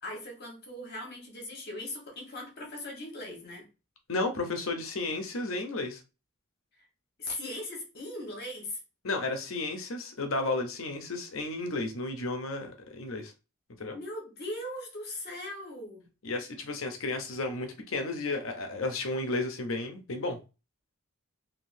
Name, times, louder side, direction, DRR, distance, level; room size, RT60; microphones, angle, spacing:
voice 1, 0.0-3.7 6.8-6.9 7.2-8.8 13.9-16.1, left 1 dB, 50° left, 1.3 m, -39 dB
voice 2, 4.1-6.0 9.0-13.3 13.8-14.0 16.2-20.4, left 2 dB, 70° left, 0.8 m, -33 dB
3.6 x 2.7 x 2.7 m
head